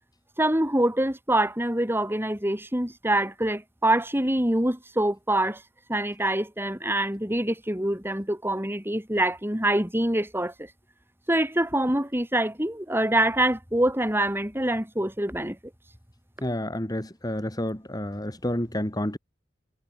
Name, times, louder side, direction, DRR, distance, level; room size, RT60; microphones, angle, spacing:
voice 1, 0.4-5.6 5.9-10.7 11.3-15.6, right 1 dB, 15° right, 6.6 m, -25 dB
voice 2, 16.4-19.2, left 1 dB, 20° left, 3.6 m, -29 dB
head